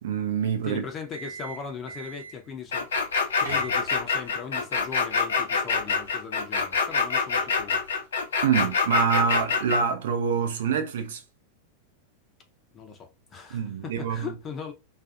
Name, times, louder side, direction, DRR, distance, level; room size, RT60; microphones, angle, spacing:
voice 1, 0.0-0.8 8.4-11.2 13.5-14.3, right 6 dB, 60° right, 0.6 m, -25 dB
voice 2, 0.6-2.9 3.4-8.0 12.7-14.7, left 6 dB, 25° left, 0.6 m, -39 dB
sound 1, 1.0-2.5 3.1-4.2, right 3 dB, 85° right, 1.1 m, -40 dB
sound 2, 2.7-9.8, left 5 dB, 65° left, 0.6 m, -25 dB
2.4 x 2.3 x 2.6 m
figure-of-eight pair, 90°, 0 cm